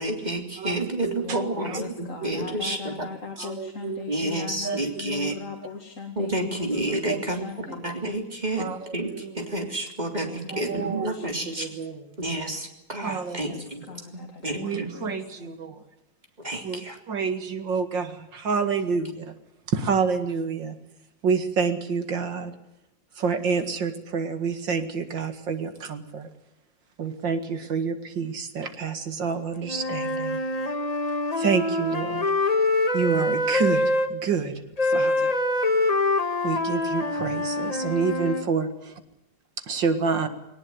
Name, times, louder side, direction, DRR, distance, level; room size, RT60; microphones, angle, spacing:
voice 1, 0.0-3.1 4.1-5.4 6.2-9.1 9.3-11.7 12.2-13.8 14.1-14.9 16.4-17.0, right 1 dB, 20° right, 3 dB, 3.4 m, -30 dB
voice 2, 0.6-1.8 2.2-2.4 3.4-4.0 4.6-4.8 7.0-7.2 8.6-8.8 9.0-9.3 10.5-11.1 11.5-12.2 13.0-13.6 14.5-15.8 16.6-19.3 19.7-20.8 21.2-22.5 23.2-26.3 27.0-30.4 31.4-32.3 32.9-35.4 36.4-39.0 39.7-40.3, right 5 dB, 70° right, 9 dB, 2.6 m, -28 dB
voice 3, 1.2-7.9 10.2-11.7 13.5-15.6, left 5 dB, 40° left, 3 dB, 2.3 m, -39 dB
Wind instrument woodwind instrument, 29.7-34.1 34.8-38.5, left 2 dB, 20° left, 1.5 m, -25 dB
20.5 x 19.0 x 9.4 m, 0.85 s
omnidirectional pair, 2.1 m